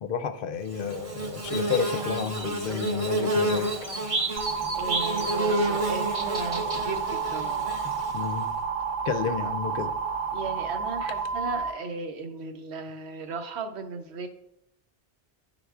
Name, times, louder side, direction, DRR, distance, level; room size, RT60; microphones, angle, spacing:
voice 1, 0.0-3.7 8.1-8.5 9.0-9.9, left 6 dB, 60° left, 8 dB, 0.7 m, -31 dB
Bird / Buzz, 0.7-8.4, right 1 dB, 35° right, 0.8 m, -29 dB
sound 1, 4.4-11.7, right 5 dB, 65° right, 0.7 m, -30 dB
voice 2, 4.7-7.6 10.3-14.3, right 4 dB, 80° right, 7 dB, 1.0 m, -36 dB
11.0 x 3.8 x 2.4 m, 0.78 s
omnidirectional pair, 1.1 m